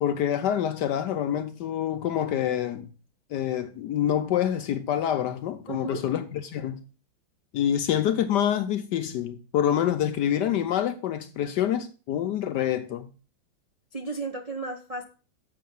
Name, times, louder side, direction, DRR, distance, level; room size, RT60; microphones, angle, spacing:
voice 1, 0.0-2.9 3.3-6.8 7.5-13.1, left 10 dB, 75° left, 1.0 m, -26 dB
voice 2, 5.7-6.0 13.9-15.0, right 3 dB, 80° right, 0.3 m, -34 dB
7.5 x 5.7 x 5.4 m
omnidirectional pair, 2.3 m